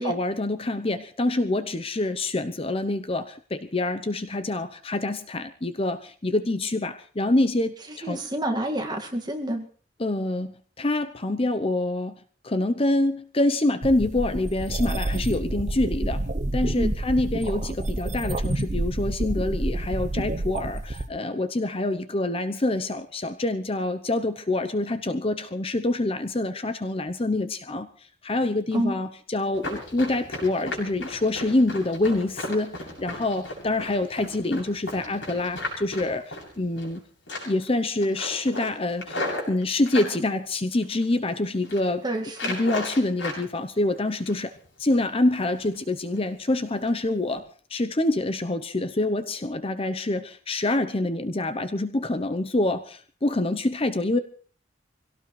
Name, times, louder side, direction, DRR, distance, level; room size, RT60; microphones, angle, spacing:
voice 1, 0.0-8.2 10.0-12.2 12.4-16.2 16.5-27.9 28.2-37.0 37.4-42.0 42.5-44.5 44.8-47.5 47.7-54.2, left 2 dB, 30° left, 10 dB, 0.8 m, -26 dB
voice 2, 8.0-9.7 16.8-16.9 28.7-29.0 42.0-42.5, right 1 dB, 25° right, 3 dB, 2.0 m, -28 dB
sound 1, 13.8-21.1, right 1 dB, 40° right, 0.8 m, -29 dB
Run, 29.5-37.0 37.3-37.7 38.0-40.1 40.7-41.3 41.6-41.8 42.3-43.4 43.8-44.6 44.9-45.1 45.5-45.8 46.1-46.3 46.7-46.9 47.3-47.4, left 2 dB, 80° left, 7.5 m, -35 dB
25.0 x 17.5 x 3.3 m, 0.42 s
head